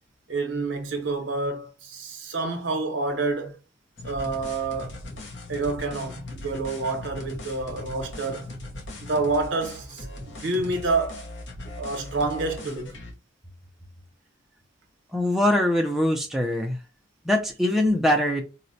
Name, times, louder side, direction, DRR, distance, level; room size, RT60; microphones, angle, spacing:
voice 1, 0.3-3.6 4.0-5.0 5.5-8.5 9.0-11.2 11.8-13.1, right 3 dB, 75° right, 0.7 m, -28 dB
sound 1, 4.0-13.1, left 2 dB, 70° left, 0.7 m, -39 dB
voice 2, 15.1-16.8 17.3-18.4, left 1 dB, ahead, 0.4 m, -22 dB
4.1 x 2.1 x 2.6 m
head